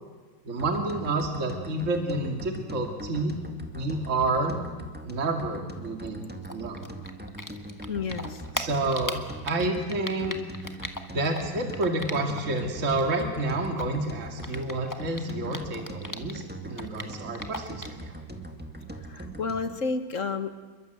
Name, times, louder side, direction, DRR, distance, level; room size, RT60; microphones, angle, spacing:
voice 1, 0.5-3.3 3.7-4.6 5.0-6.9 8.6-9.2 9.4-10.4 11.1-18.2, right 2 dB, 35° right, 3 dB, 2.5 m, -29 dB
sound 1, 0.6-19.8, right 2 dB, 5° right, 1.7 m, -41 dB
Typing, 6.4-12.6 12.8-16.4 16.7-18.0, left 1 dB, 10° left, 1.3 m, -37 dB
voice 2, 7.9-8.4 19.0-20.5, left 4 dB, 40° left, 9 dB, 1.6 m, -31 dB
28.5 x 22.5 x 7.9 m, 1.4 s
omnidirectional pair, 2.3 m